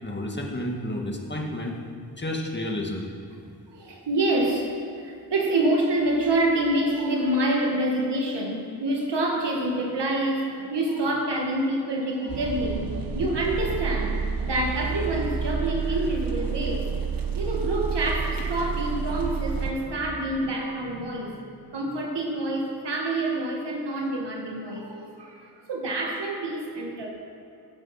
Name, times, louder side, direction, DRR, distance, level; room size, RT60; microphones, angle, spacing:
voice 1, 0.0-1.7 2.1-3.0, left 1 dB, 25° left, 0 dB, 1.8 m, -31 dB
voice 2, 3.7-4.7 5.0-16.8 17.4-21.4 21.7-27.1, right 1 dB, 80° right, 0 dB, 1.8 m, -27 dB
sound 1, 12.3-19.7, right 5 dB, 55° right, 1.1 m, -29 dB
15.0 x 7.6 x 5.8 m, 2.6 s
wide cardioid pair, 95°, 41 cm